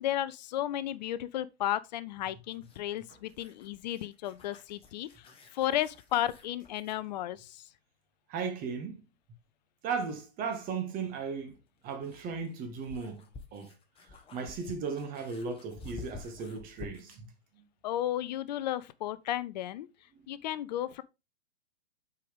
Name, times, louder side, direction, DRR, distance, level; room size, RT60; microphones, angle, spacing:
voice 1, 0.0-7.7 17.8-19.9 20.3-21.0, left 12 dB, 40° left, 0.5 m, -34 dB
sound 1, 2.5-7.0 9.4-9.5 11.5-17.3, left 3 dB, 15° left, 1.2 m, -50 dB
voice 2, 8.3-9.0 9.8-11.6 11.8-13.2 13.5-13.7 14.3-17.3 17.6-17.7, right 5 dB, 25° right, 1.7 m, -36 dB
7.6 x 4.7 x 3.5 m
hypercardioid pair, 120°, 32 cm